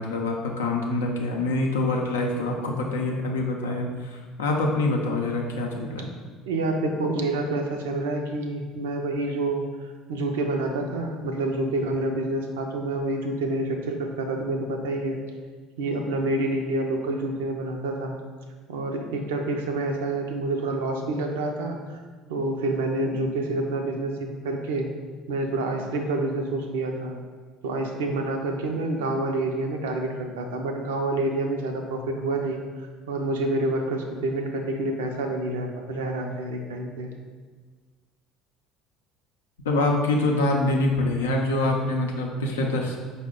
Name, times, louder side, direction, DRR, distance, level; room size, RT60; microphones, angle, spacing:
voice 1, 0.0-6.1 39.6-43.0, left 2 dB, 85° left, 1 dB, 0.5 m, -25 dB
voice 2, 6.5-15.2 15.8-18.2 18.7-22.0 22.3-24.9 25.3-27.2 27.6-37.1, right 2 dB, 80° right, 3 dB, 0.4 m, -28 dB
5.0 x 2.1 x 3.6 m, 1.4 s
hypercardioid pair, 65°, 0 cm